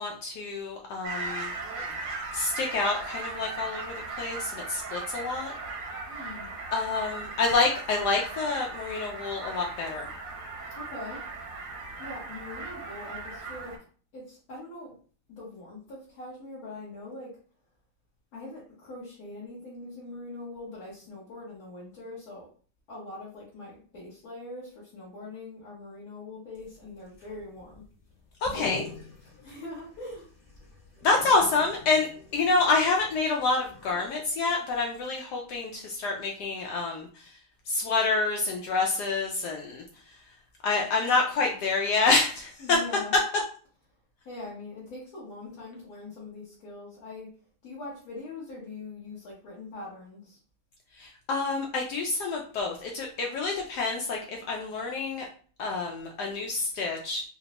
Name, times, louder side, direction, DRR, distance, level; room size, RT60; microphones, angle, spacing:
voice 1, 0.0-1.5 2.3-5.5 6.7-10.1 28.4-28.8 31.0-37.1 37.7-39.8 40.6-42.8 51.0-55.2 55.6-57.2, left 3 dB, 80° left, 0 dB, 0.9 m, -27 dB
sound 1, 1.0-13.8, right 3 dB, 80° right, 1.8 m, -38 dB
voice 2, 6.1-6.5 10.7-11.2 12.0-13.7 14.1-14.9 15.3-17.3 18.3-22.5 22.9-27.8 28.4-28.8 29.4-30.3 42.6-43.2 44.2-47.3 47.6-50.4, left 2 dB, 55° left, -8 dB, 1.2 m, -42 dB
sound 2, 26.6-34.5 34.8-34.9, left 3 dB, 20° left, 1.0 m, -45 dB
3.9 x 2.1 x 2.8 m, 0.43 s
omnidirectional pair, 2.3 m